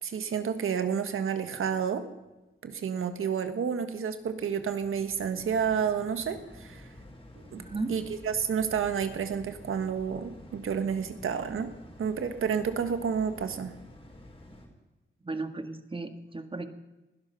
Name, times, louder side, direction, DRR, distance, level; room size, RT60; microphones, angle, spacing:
voice 1, 0.0-2.0 2.6-6.9 7.5-7.6 7.9-11.7 12.0-13.7, right 7 dB, 85° right, 9 dB, 1.6 m, -30 dB
sound 1, 3.6-14.7, left 1 dB, 30° left, 4.6 m, -50 dB
voice 2, 7.5-7.9 15.2-16.7, right 3 dB, 25° right, 8 dB, 1.7 m, -35 dB
20.5 x 12.0 x 5.6 m, 1.0 s
cardioid pair, 70°, 21 cm